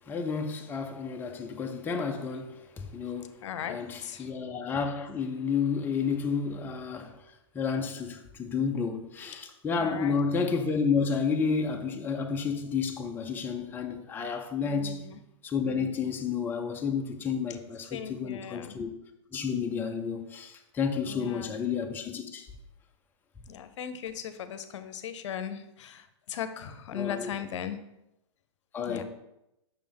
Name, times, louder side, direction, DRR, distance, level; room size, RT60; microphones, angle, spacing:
voice 1, 0.1-3.4 3.7-15.1 15.4-18.9 19.3-22.5 26.9-27.3 28.7-29.0, left 5 dB, 10° left, 0.5 m, -31 dB
voice 2, 3.4-4.3 9.8-10.2 14.6-15.2 17.9-18.8 21.0-21.6 23.5-27.8 28.9-29.0, left 9 dB, 65° left, 0.7 m, -38 dB
6.0 x 3.4 x 5.3 m
hypercardioid pair, 135°, 16 cm